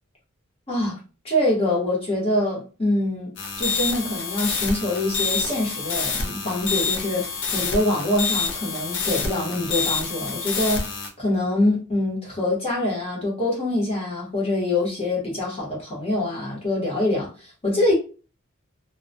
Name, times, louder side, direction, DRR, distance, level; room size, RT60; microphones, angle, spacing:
voice 1, 0.7-1.0 1.2-3.3 3.6-17.9, left 1 dB, 30° left, 0.9 m, -25 dB
sound 1, 3.4-11.1, left 5 dB, 55° left, 0.5 m, -27 dB
2.2 x 2.1 x 2.6 m
head